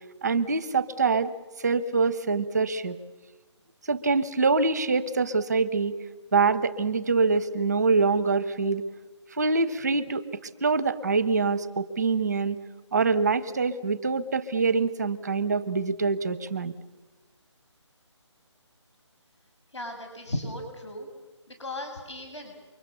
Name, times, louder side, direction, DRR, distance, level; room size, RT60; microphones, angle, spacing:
voice 1, 0.2-1.3 1.6-3.0 3.9-6.0 6.3-8.8 9.3-10.2 10.6-12.6 12.9-16.7, right 4 dB, 5° right, 13 dB, 0.7 m, -25 dB
voice 2, 19.7-21.1 21.5-22.6, left 1 dB, 70° left, 4 dB, 7.1 m, -36 dB
29.0 x 24.0 x 7.0 m, 1.2 s
hypercardioid pair, 175°, 16 cm